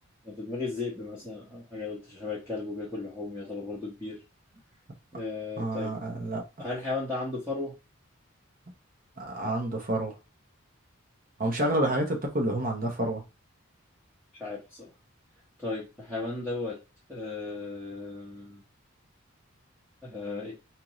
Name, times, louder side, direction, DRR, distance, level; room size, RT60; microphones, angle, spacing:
voice 1, 0.2-4.2 5.1-5.9 6.6-7.7 14.4-14.9 15.6-16.8 17.1-18.6 20.0-20.5, left 3 dB, 10° right, 1.1 m, -35 dB
voice 2, 5.6-6.4 9.2-10.1 11.4-13.2, right 1 dB, 40° right, 0.9 m, -28 dB
4.4 x 2.5 x 3.0 m
head